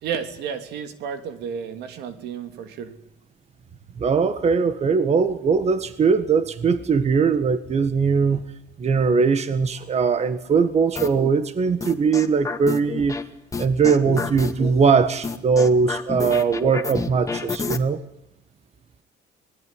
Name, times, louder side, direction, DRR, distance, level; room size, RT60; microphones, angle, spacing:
voice 1, 0.0-2.9, right 7 dB, 80° right, 8 dB, 3.1 m, -32 dB
voice 2, 4.0-8.4 8.8-13.2 13.6-18.0, right 5 dB, 40° right, 11 dB, 1.8 m, -20 dB
sound 1, 11.0-11.3 11.8-13.2 13.5-14.7 15.2-17.8, left 4 dB, 20° left, 2.3 m, -29 dB
26.0 x 20.5 x 10.0 m, 0.80 s
cardioid pair, 110°, 17 cm